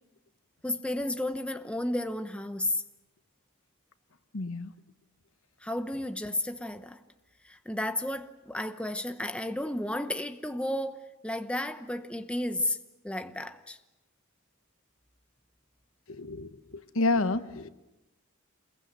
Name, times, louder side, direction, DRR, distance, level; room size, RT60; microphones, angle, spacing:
voice 1, 0.6-2.8 5.6-7.0 7.5-12.8 13.0-13.8, left 1 dB, 5° left, 1.0 m, -32 dB
voice 2, 4.3-4.7 16.1-17.7, left 2 dB, 70° left, 1.2 m, -30 dB
27.5 x 22.0 x 8.1 m
head